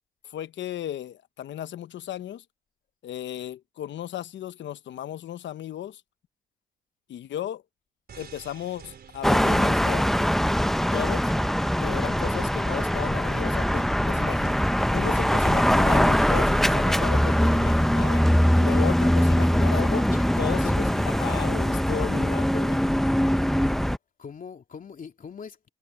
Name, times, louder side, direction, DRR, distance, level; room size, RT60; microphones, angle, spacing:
voice 1, 0.2-2.4 3.0-6.0 7.1-7.6 8.2-10.1 10.9-11.3 11.8-14.6 14.9-22.8, left 11 dB, 65° left, 1.0 m, -35 dB
sound 1, 8.1-19.4, right 7 dB, 50° right, 4.0 m, -48 dB
sound 2, 9.2-24.0, equal, ahead, 0.6 m, -22 dB
voice 2, 19.6-22.0 24.2-25.7, left 6 dB, 45° left, 3.0 m, -42 dB
cardioid pair, 90°, 20 cm